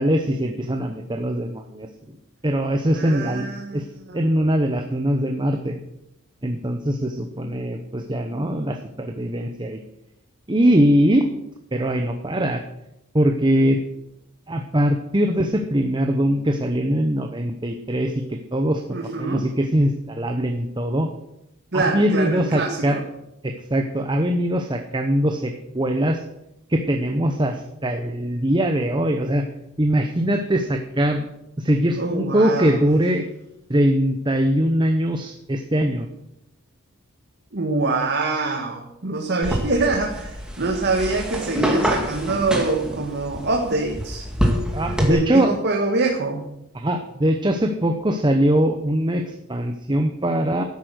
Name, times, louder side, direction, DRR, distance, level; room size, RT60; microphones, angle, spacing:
voice 1, 0.0-1.9 2.4-3.5 3.7-3.8 4.1-5.8 6.4-9.8 10.5-11.3 11.7-12.6 13.1-13.8 14.5-21.1 21.7-23.0 23.4-26.2 26.7-29.5 29.8-31.3 31.6-33.3 33.7-36.1 44.7-45.5 46.7-50.6, equal, 20° right, 5 dB, 0.9 m, -22 dB
voice 2, 2.9-4.9 18.9-19.5 21.7-23.0 32.0-32.7 37.5-44.3 45.0-46.4, right 3 dB, 50° right, 1 dB, 1.6 m, -25 dB
sound 1, 39.4-45.1, equal, 5° right, 2.1 m, -26 dB
13.0 x 10.0 x 6.4 m, 0.84 s
head